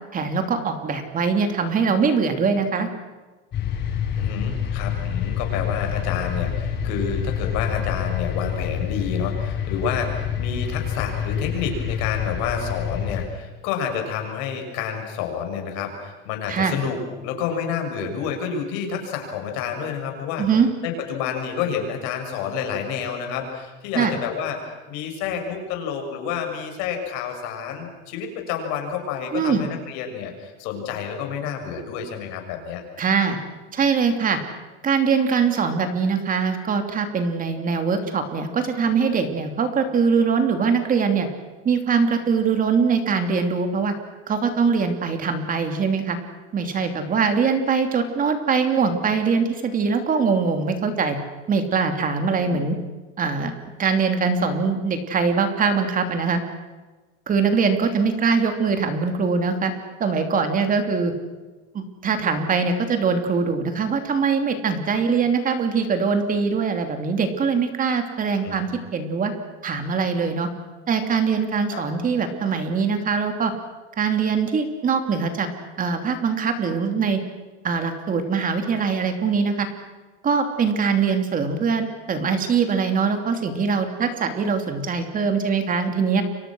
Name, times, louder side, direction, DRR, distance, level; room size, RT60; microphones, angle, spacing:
voice 1, 0.1-2.9 16.5-16.7 20.4-20.7 23.9-24.2 29.3-29.7 33.0-33.4 33.7-34.4 34.8-41.3 41.6-43.9 44.3-46.2 46.5-51.2 51.5-52.8 53.2-53.5 53.8-56.4 57.3-59.7 60.0-61.1 61.7-69.3 69.6-70.5 70.9-73.5 74.0-75.5 75.8-77.2 77.6-79.7 80.2-86.2, right 5 dB, 25° right, 6 dB, 2.9 m, -22 dB
sound 1, 3.5-13.3, left 8 dB, 35° left, 5.3 m, -27 dB
voice 2, 4.2-17.0 17.2-20.5 20.8-24.6 24.9-32.8 68.4-68.7 71.7-71.8, left 7 dB, 70° left, 4 dB, 6.9 m, -29 dB
30.0 x 24.5 x 6.3 m, 1.3 s
cardioid pair, 155°, 31 cm